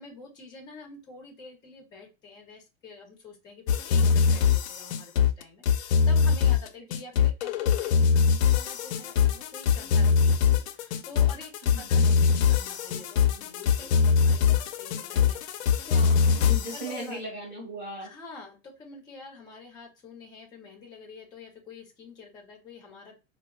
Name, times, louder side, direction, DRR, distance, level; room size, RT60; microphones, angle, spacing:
voice 1, 0.0-16.0 16.7-17.2 18.0-23.2, left 3 dB, 10° left, -1 dB, 0.6 m, -47 dB
sound 1, 3.7-16.9, left 6 dB, 65° left, 0.5 m, -23 dB
voice 2, 15.9-18.1, right 1 dB, 35° right, -6 dB, 1.3 m, -38 dB
4.7 x 2.0 x 2.3 m, 0.28 s
supercardioid pair, 175°, 37 cm